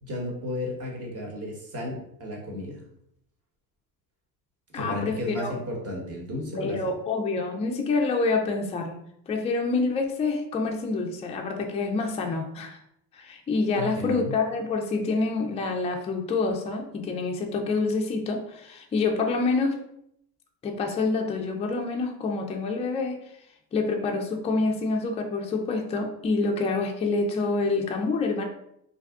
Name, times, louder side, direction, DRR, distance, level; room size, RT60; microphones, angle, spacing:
voice 1, 0.0-2.8 4.7-7.0 13.7-14.3, left 1 dB, 30° right, -1 dB, 1.1 m, -33 dB
voice 2, 4.7-5.6 6.6-9.0 9.3-12.8 13.1-19.8 20.6-23.2 23.7-28.4, left 3 dB, 15° left, 2 dB, 0.3 m, -27 dB
2.6 x 2.3 x 3.5 m, 0.75 s
supercardioid pair, 90°, 45 cm